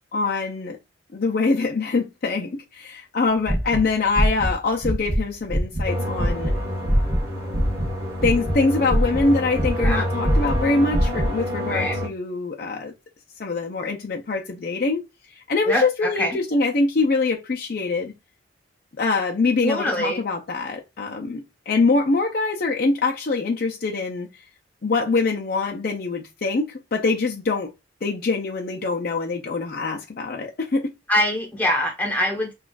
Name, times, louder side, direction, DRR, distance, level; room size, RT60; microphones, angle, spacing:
voice 1, 0.1-0.8 1.1-6.5 8.2-12.9 13.4-15.0 15.3-18.1 19.0-24.3 24.8-27.7 28.0-30.9, left 3 dB, 50° left, 0.5 m, -24 dB
sound 1, 3.4-4.5 4.8-5.2 5.5-7.9 8.2-10.0 10.2-11.3, equal, 40° right, 1.3 m, -22 dB
sound 2, 5.9-12.1, equal, 15° right, 1.8 m, -29 dB
voice 2, 9.8-10.1 11.7-12.0 15.7-16.4 19.6-20.2 31.1-32.5, left 1 dB, 10° left, 1.1 m, -24 dB
5.9 x 2.4 x 2.4 m
head